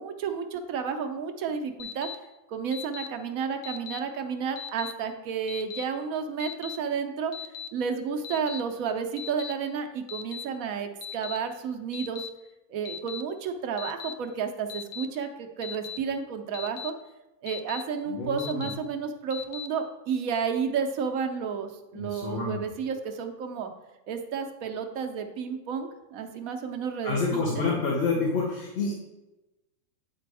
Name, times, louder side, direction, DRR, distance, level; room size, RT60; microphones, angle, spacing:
voice 1, 0.0-2.1 2.5-7.3 7.7-12.3 12.7-16.9 17.4-23.7 24.1-27.6, right 6 dB, 75° right, 5 dB, 1.1 m, -31 dB
Alarm, 1.8-2.2 2.7-3.1 3.6-4.0 4.6-4.9 5.5-5.8 6.4-6.8 7.3-7.7 8.2-8.6 9.2-9.5 10.1-10.4 11.0-11.4 11.9-12.3 12.9-13.2 13.8-14.1 14.7-15.1 15.6-16.0 16.5-16.9 17.5-17.8 18.4-18.7 19.3-19.7, left 8 dB, 80° left, 1.1 m, -38 dB
voice 2, 18.1-18.7 21.9-22.6 27.0-28.9, left 3 dB, 50° left, -4 dB, 1.3 m, -28 dB
9.0 x 3.4 x 4.6 m, 1.0 s
omnidirectional pair, 1.5 m